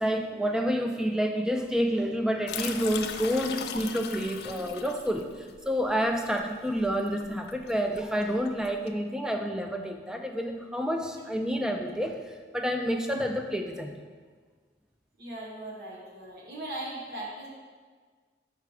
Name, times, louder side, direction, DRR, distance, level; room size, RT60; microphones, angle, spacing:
voice 1, 0.0-14.0, equal, 5° right, 4 dB, 0.4 m, -29 dB
sound 1, 2.5-8.9, left 7 dB, 60° left, 0.4 m, -39 dB
voice 2, 15.2-17.5, right 1 dB, 55° right, -4 dB, 1.1 m, -39 dB
5.7 x 4.7 x 4.8 m, 1.5 s
head